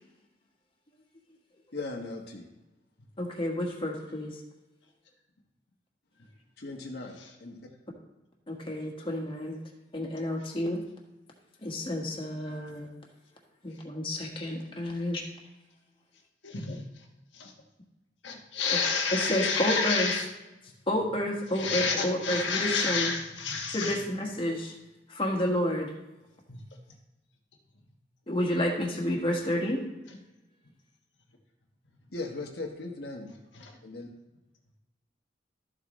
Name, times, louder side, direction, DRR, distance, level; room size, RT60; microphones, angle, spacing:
voice 1, 1.7-2.5 6.6-7.6 32.1-33.3 33.8-34.1, left 2 dB, 65° left, 1 dB, 1.2 m, -38 dB
voice 2, 3.2-4.3 8.5-9.6 9.9-10.8 11.6-12.9 13.6-15.2 19.1-20.1 20.9-23.1 23.7-24.7 25.1-25.9 28.3-29.8, left 1 dB, 30° left, -1 dB, 1.5 m, -30 dB
voice 3, 16.4-16.8 17.3-17.5 18.2-20.3 21.5-24.0 26.5-26.6 33.5-33.7, left 4 dB, 90° left, 0 dB, 1.3 m, -30 dB
12.5 x 7.5 x 3.1 m, 1.0 s
head